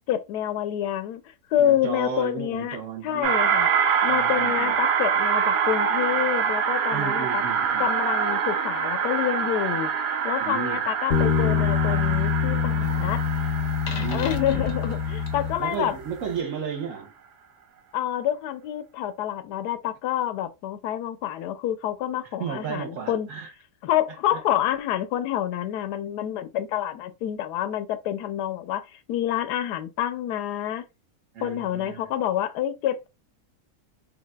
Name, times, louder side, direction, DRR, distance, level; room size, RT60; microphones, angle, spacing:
voice 1, 0.1-1.2 1.5-2.8 3.0-3.7 4.0-7.4 7.8-13.2 14.1-16.0 17.9-23.3 23.8-30.8 31.4-33.1, left 11 dB, 80° left, 1.1 m, -28 dB
voice 2, 1.6-3.4 4.1-4.8 6.9-7.9 10.4-10.9 13.9-14.4 15.6-17.1 22.2-23.5 24.3-24.4 31.3-32.1, right 7 dB, 60° right, 1.0 m, -34 dB
sound 1, 3.2-15.9, right 7 dB, 85° right, 1.3 m, -25 dB
sound 2, 11.1-16.0, left 6 dB, 60° left, 0.8 m, -25 dB
5.7 x 2.4 x 2.2 m
omnidirectional pair, 1.7 m